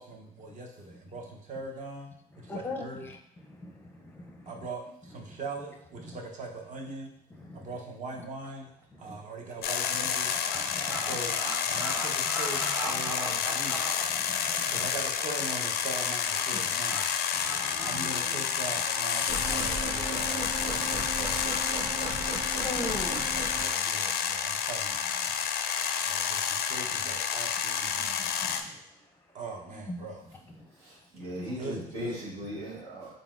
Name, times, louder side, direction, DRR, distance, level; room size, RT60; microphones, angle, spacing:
voice 1, 0.0-2.1 2.4-3.0 4.5-7.1 7.5-8.7 9.0-10.3 10.9-13.8 14.7-17.1 17.8-21.6 23.5-25.3 26.0-28.2 29.3-30.2 31.5-32.2, right 2 dB, 45° right, 1 dB, 0.8 m, -41 dB
voice 2, 2.3-3.2 3.4-4.5 5.3-5.4 6.0-6.2 7.3-7.7 8.1-8.2 8.9-9.2 10.5-11.2 11.7-11.9 12.6-13.1 13.8-14.9 16.5-16.7 17.3-18.1 19.7-19.9 20.5-21.0 21.4-21.6 21.8-23.6 24.1-24.2 24.4-24.5 25.2-25.4 25.6-26.3 26.9-27.0 28.0-29.0 29.7-30.1 30.6-31.0 31.3-31.6, left 1 dB, 10° left, 2 dB, 0.5 m, -43 dB
sound 1, 8.4-8.7 9.0-14.5 14.9-15.2 15.5-16.0 16.3-16.4 16.8-17.0 17.4-17.9, right 1 dB, 15° right, 0.9 m, -38 dB
sound 2, 9.6-28.6, left 8 dB, 70° left, 0.4 m, -30 dB
voice 3, 17.4-18.6 30.7-33.1, equal, 90° right, -4 dB, 1.5 m, -40 dB
sound 3, 19.3-23.7, right 2 dB, 65° right, 1.1 m, -36 dB
3.9 x 3.8 x 2.5 m, 0.79 s
cardioid pair, 110°, 17 cm